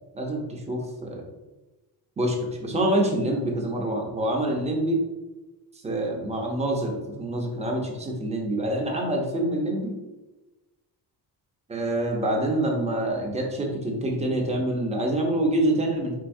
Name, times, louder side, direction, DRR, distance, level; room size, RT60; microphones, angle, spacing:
voice 1, 0.1-1.2 2.2-5.0 5.8-9.9 11.7-16.1, right 1 dB, 15° right, 0 dB, 0.7 m, -26 dB
4.6 x 3.9 x 2.6 m, 1.1 s
cardioid pair, 155°, 40 cm